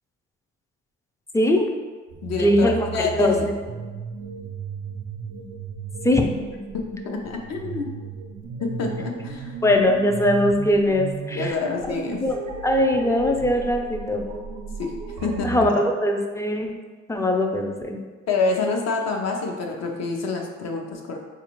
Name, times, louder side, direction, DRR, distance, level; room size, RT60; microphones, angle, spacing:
voice 1, 1.3-1.7 2.3-3.5 6.0-6.3 9.6-11.5 12.1-12.4 12.6-14.2 15.4-16.7 17.1-18.0, left 1 dB, 10° left, 3 dB, 0.3 m, -21 dB
sound 1, 2.1-15.8, right 5 dB, 85° right, 0.5 m, -35 dB
voice 2, 2.2-3.4 6.7-7.9 8.6-9.6 11.3-12.2 14.8-14.9 15.2-15.7 18.3-21.2, left 4 dB, 60° left, 1 dB, 0.7 m, -27 dB
4.0 x 2.4 x 3.0 m, 1.4 s
cardioid pair, 90°, 30 cm